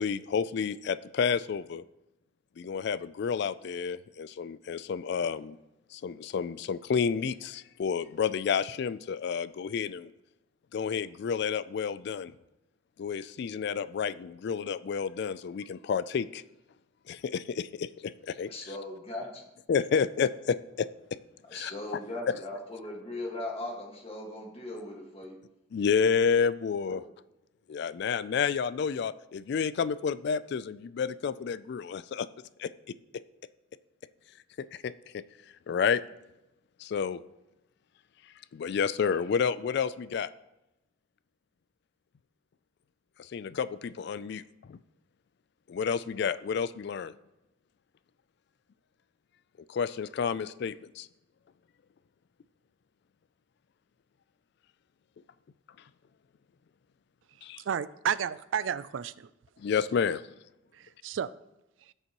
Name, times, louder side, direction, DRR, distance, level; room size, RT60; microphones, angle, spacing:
voice 1, 0.0-1.8 2.6-5.6 5.9-10.1 10.7-12.3 13.0-16.4 17.1-18.5 19.7-20.9 21.5-22.0 22.3-22.4 25.7-27.0 27.7-32.3 32.6-32.7 34.6-35.2 35.7-36.0 36.8-37.2 38.5-40.3 43.2-44.4 44.7-44.8 45.7-47.1 49.7-51.1 57.4-57.6 59.6-60.2, left 6 dB, 55° left, 0.3 m, -30 dB
voice 2, 18.5-19.4 21.5-25.4, left 1 dB, 30° left, 1.7 m, -38 dB
voice 3, 57.7-59.3 60.7-61.3, right 8 dB, 70° right, 0.3 m, -32 dB
17.0 x 6.7 x 3.0 m
head